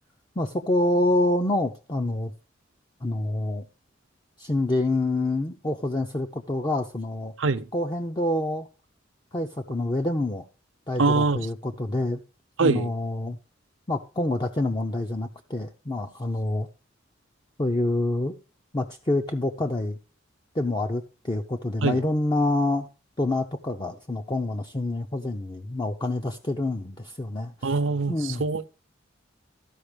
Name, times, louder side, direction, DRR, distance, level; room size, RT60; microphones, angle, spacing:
voice 1, 0.4-2.3 3.0-3.7 4.4-7.3 7.7-8.7 9.3-10.4 10.9-12.2 12.6-13.4 13.9-16.7 17.6-18.3 18.7-20.0 20.5-22.9 23.2-27.7 28.1-28.4, left 2 dB, 25° left, 0.6 m, -27 dB
voice 2, 11.0-11.5 12.6-12.9 21.8-22.0 27.6-28.1 28.4-28.7, right 3 dB, 75° right, 0.7 m, -23 dB
13.5 x 5.3 x 5.0 m
head